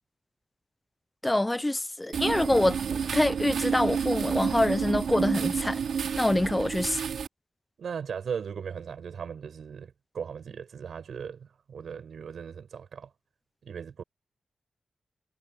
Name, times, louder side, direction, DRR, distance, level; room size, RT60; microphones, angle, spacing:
voice 1, 1.2-5.8 6.2-7.0, left 1 dB, 10° left, 0.5 m, -26 dB
sound 1, 2.1-7.3, right 7 dB, 90° right, 3.4 m, -30 dB
voice 2, 7.8-13.1 13.6-14.0, right 7 dB, 70° right, 7.3 m, -38 dB
wide cardioid pair, 160°, 0 cm